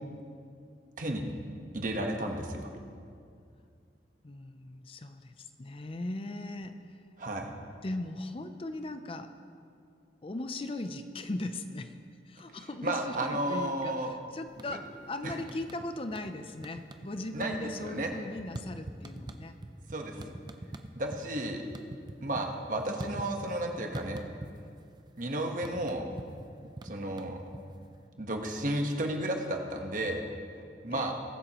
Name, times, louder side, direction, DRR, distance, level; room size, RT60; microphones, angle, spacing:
voice 1, 1.7-2.7 7.2-7.5 12.8-14.2 14.7-14.8 15.2-15.4 17.3-18.1 19.9-20.2 20.9-21.6 22.2-24.2 25.2-26.1 26.8-27.4 28.2-30.2 30.5-31.1, right 1 dB, 50° right, 3 dB, 1.2 m, -33 dB
voice 2, 4.2-7.0 7.8-9.3 10.2-12.0 12.3-19.6 20.1-20.4 30.9-31.1, left 2 dB, 30° left, 8 dB, 0.5 m, -39 dB
sound 1, 14.5-15.0 15.3-16.3 16.6-17.1 17.4-21.2 21.5-23.6 23.9-24.8 25.1-27.9, right 1 dB, 25° right, 0.5 m, -43 dB
21.5 x 9.0 x 3.0 m, 2.3 s
head